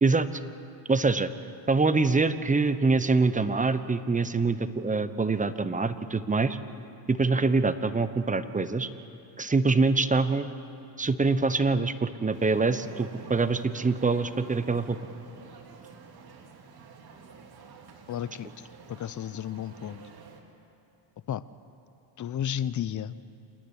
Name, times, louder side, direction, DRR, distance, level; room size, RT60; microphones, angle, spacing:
voice 1, 0.9-1.3 1.7-6.6 7.1-8.9 9.4-10.5 11.0-15.0, right 3 dB, 15° right, 12 dB, 1.0 m, -25 dB
sound 1, 12.3-20.4, right 5 dB, 45° right, 2.9 m, -49 dB
voice 2, 18.1-18.5 18.9-20.0 21.3-21.4 22.2-23.1, left 10 dB, 35° left, 16 dB, 0.8 m, -32 dB
28.0 x 10.0 x 9.9 m, 2.9 s
supercardioid pair, 90°, 50 cm